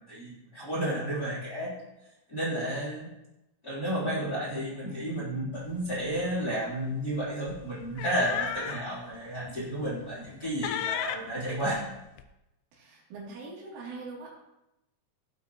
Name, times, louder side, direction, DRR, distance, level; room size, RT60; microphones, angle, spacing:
voice 1, 0.0-1.8 2.3-3.1 3.6-11.8, right 1 dB, 20° left, -6 dB, 3.5 m, -32 dB
sound 1, 5.7-5.9 6.2-6.4 7.5-8.9 9.4-9.5 10.0-10.4 10.6-12.2, left 9 dB, 80° left, 2.9 m, -34 dB
voice 2, 12.7-14.3, right 3 dB, 75° right, -4 dB, 5.6 m, -42 dB
18.5 x 8.5 x 3.1 m, 0.91 s
omnidirectional pair, 5.7 m